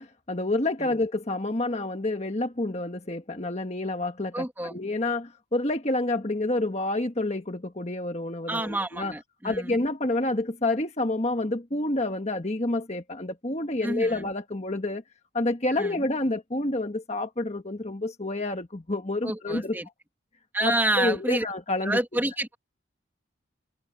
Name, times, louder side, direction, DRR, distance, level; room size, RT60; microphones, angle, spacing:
voice 1, 0.0-9.1 9.4-15.0 15.3-19.8 20.6-22.2, left 2 dB, 35° left, 1.4 m, -28 dB
voice 2, 4.3-4.8 8.5-9.8 13.8-14.3 15.8-16.0 19.2-19.9 20.5-21.5 21.8-22.6, right 1 dB, 10° right, 2.5 m, -28 dB
head